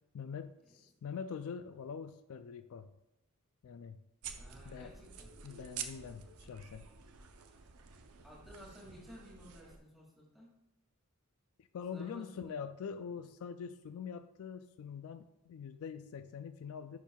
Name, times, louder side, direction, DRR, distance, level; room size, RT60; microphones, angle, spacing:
voice 1, 0.1-2.9 3.6-4.0 4.6-4.9 5.4-6.9 11.6-17.0, left 6 dB, 70° left, 10 dB, 0.3 m, -44 dB
sound 1, 4.2-9.8, right 7 dB, 75° right, 0.6 m, -49 dB
voice 2, 4.4-5.3 8.2-10.5 11.9-12.6, equal, ahead, -5 dB, 2.3 m, -54 dB
10.5 x 4.5 x 2.3 m, 0.88 s
head